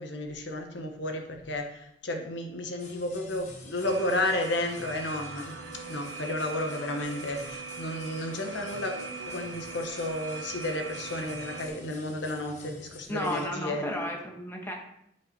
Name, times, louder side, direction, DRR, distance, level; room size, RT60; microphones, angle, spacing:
voice 1, 0.0-5.6 5.9-14.1, left 1 dB, 70° left, 4 dB, 1.1 m, -32 dB
sound 1, 2.8-13.5, left 2 dB, 40° left, 1.3 m, -48 dB
sound 2, 3.8-11.7, right 5 dB, 85° right, 1.2 m, -41 dB
voice 2, 13.1-14.7, equal, 10° left, 0 dB, 1.6 m, -33 dB
10.5 x 5.3 x 4.6 m, 0.76 s
head